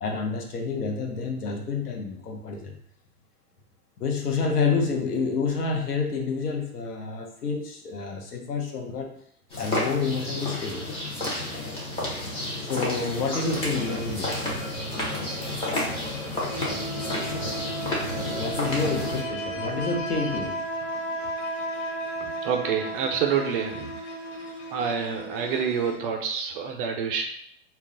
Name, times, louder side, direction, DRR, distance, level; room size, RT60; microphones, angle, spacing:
voice 1, 0.0-2.7 4.0-9.1 9.6-10.9 12.6-14.4 18.4-20.6, left 4 dB, 90° left, 1 dB, 0.8 m, -28 dB
sound 1, 9.5-19.2, left 1 dB, 15° left, 0.6 m, -31 dB
sound 2, 12.4-25.9, left 1 dB, 55° left, 0.9 m, -44 dB
sound 3, 16.4-26.2, right 1 dB, 30° left, 0.9 m, -34 dB
voice 2, 22.2-23.9 24.7-27.2, right 7 dB, 40° right, 3 dB, 0.4 m, -27 dB
2.3 x 2.0 x 3.7 m, 0.66 s
hypercardioid pair, 115°, 45 cm